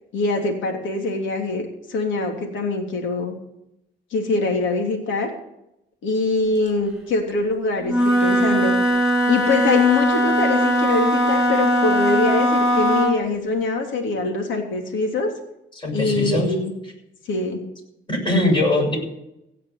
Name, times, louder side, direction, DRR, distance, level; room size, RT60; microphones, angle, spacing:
voice 1, 0.1-3.3 4.1-5.3 6.0-8.7 9.3-15.3 15.9-16.7 17.3-17.6, left 3 dB, 75° left, 2 dB, 3.2 m, -23 dB
Wind instrument woodwind instrument, 7.8-13.2, equal, 5° right, 5.7 m, -19 dB
voice 2, 15.8-16.5 18.1-19.0, left 1 dB, 25° left, -1 dB, 6.9 m, -21 dB
16.5 x 5.9 x 9.3 m, 0.84 s
cardioid pair, 90°, 20 cm